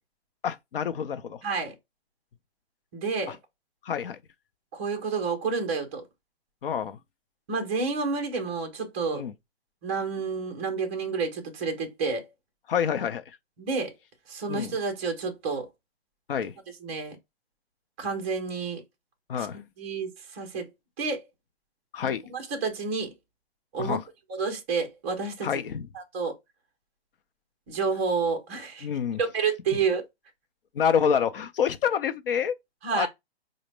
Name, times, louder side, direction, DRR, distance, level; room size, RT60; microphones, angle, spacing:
voice 1, 0.4-1.4 3.3-3.4 3.8-4.2 6.6-7.0 9.1-9.3 12.7-13.2 14.5-14.7 16.3-16.6 19.3-19.6 21.9-22.2 23.8-24.0 25.4-25.9 28.8-29.2 30.7-32.6 32.9-33.1, left 7 dB, 55° left, 0.6 m, -27 dB
voice 2, 1.4-1.7 2.9-3.4 4.7-6.0 7.5-9.2 9.8-12.2 13.6-13.9 14.3-15.7 16.8-17.2 18.0-18.8 19.4-20.7 21.0-21.2 22.3-23.1 23.7-24.0 24.4-25.5 25.9-26.3 27.7-28.9 29.2-30.0 32.8-33.1, right 4 dB, 10° right, 0.5 m, -29 dB
4.9 x 2.1 x 3.2 m
hypercardioid pair, 160°, 33 cm